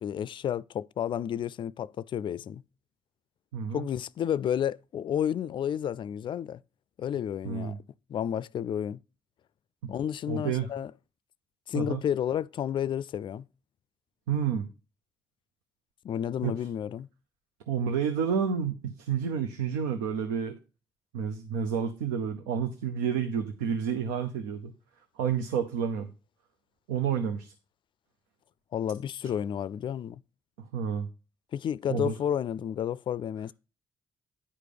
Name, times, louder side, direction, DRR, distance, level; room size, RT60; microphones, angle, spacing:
voice 1, 0.0-2.6 3.7-6.6 7.0-7.7 8.1-9.0 9.9-10.9 11.7-13.4 16.0-17.1 28.7-30.2 31.5-33.5, left 9 dB, 50° left, 0.4 m, -31 dB
voice 2, 3.5-3.8 7.4-7.8 10.3-10.7 11.7-12.0 14.3-14.7 16.4-16.5 17.7-20.6 21.1-24.7 25.2-26.1 26.9-27.5 29.2-29.3 30.6-31.1 31.9-32.1, right 7 dB, 80° right, 0.7 m, -30 dB
10.0 x 5.0 x 4.9 m
hypercardioid pair, 45°, 10 cm